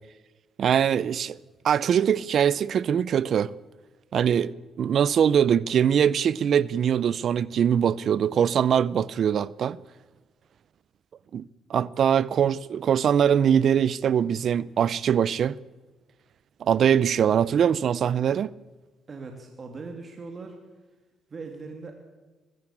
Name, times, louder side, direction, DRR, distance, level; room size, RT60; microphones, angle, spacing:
voice 1, 0.6-1.4 1.6-3.5 4.1-9.8 11.3-11.4 11.7-15.6 16.6-18.5, right 8 dB, 60° right, 0.6 m, -22 dB
voice 2, 19.1-20.6 21.3-21.9, right 4 dB, 40° right, 2.7 m, -39 dB
21.0 x 15.0 x 8.7 m
cardioid pair, 90°, 0 cm